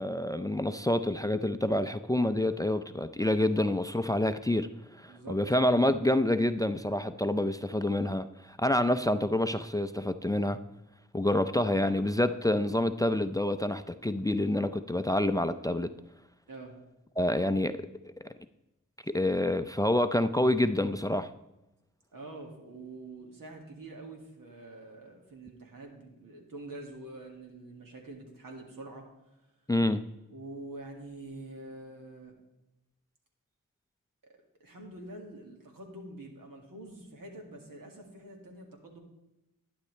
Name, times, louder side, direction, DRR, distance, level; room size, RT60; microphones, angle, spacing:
voice 1, 0.0-4.7 5.0-10.6 11.1-15.9 17.2-17.8 19.1-21.3 29.7-30.0, left 1 dB, 10° left, 10 dB, 0.4 m, -27 dB
voice 2, 5.1-5.4 8.7-9.0 16.5-16.8 22.1-29.1 30.3-32.3 34.6-39.0, right 2 dB, 85° right, 1 dB, 2.1 m, -46 dB
11.5 x 9.7 x 3.2 m, 0.96 s
cardioid pair, 50°, 33 cm